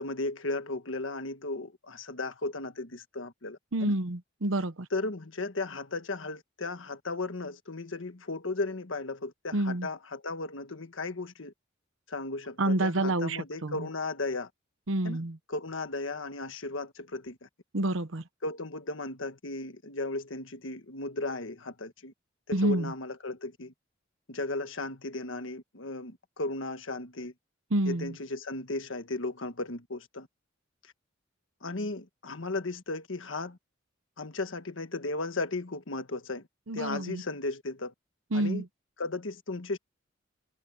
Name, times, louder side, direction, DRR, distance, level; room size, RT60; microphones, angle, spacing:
voice 1, 0.0-3.9 4.9-11.5 12.1-14.5 15.0-15.2 15.5-17.5 18.4-22.1 22.5-23.7 24.3-27.3 27.8-30.3 31.6-33.6 34.2-36.4 36.7-37.9 38.3-38.6 39.0-39.8, left 2 dB, 75° left, 1.5 m, -35 dB
voice 2, 3.7-4.9 9.5-9.9 12.6-13.9 14.9-15.4 17.7-18.2 22.5-22.9 27.7-28.1 36.7-37.2 38.3-38.7, right 1 dB, 85° right, 1.0 m, -28 dB
head